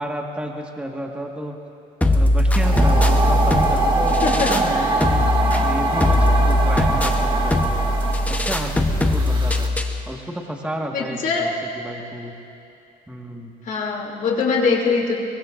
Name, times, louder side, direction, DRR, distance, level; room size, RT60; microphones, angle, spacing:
voice 1, 0.0-1.6 2.0-5.2 5.6-7.8 8.2-9.7 10.0-11.5 11.7-12.4 13.1-13.5, right 1 dB, 5° right, 1 dB, 1.6 m, -31 dB
sound 1, 2.0-10.0, left 1 dB, 10° left, 1.0 m, -20 dB
sound 2, 2.5-9.7, right 2 dB, 30° right, 2.0 m, -24 dB
voice 2, 4.1-5.0 8.7-9.2 10.9-11.5 13.6-15.1, left 4 dB, 50° left, -1 dB, 2.9 m, -23 dB
23.0 x 23.0 x 2.6 m, 2.7 s
cardioid pair, 110°, 17 cm